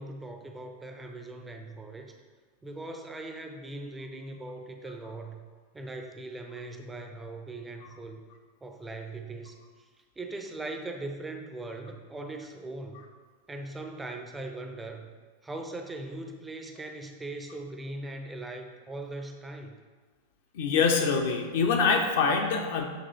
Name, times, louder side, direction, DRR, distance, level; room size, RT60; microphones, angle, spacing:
voice 1, 0.0-2.1 2.6-5.4 5.7-8.2 8.6-9.6 10.2-13.0 13.5-15.1 15.4-19.7, right 2 dB, 10° right, 4 dB, 0.6 m, -40 dB
voice 2, 20.5-22.9, left 5 dB, 55° left, 3 dB, 0.8 m, -24 dB
8.2 x 3.1 x 4.0 m, 1.4 s
figure-of-eight pair, 90°, 0 cm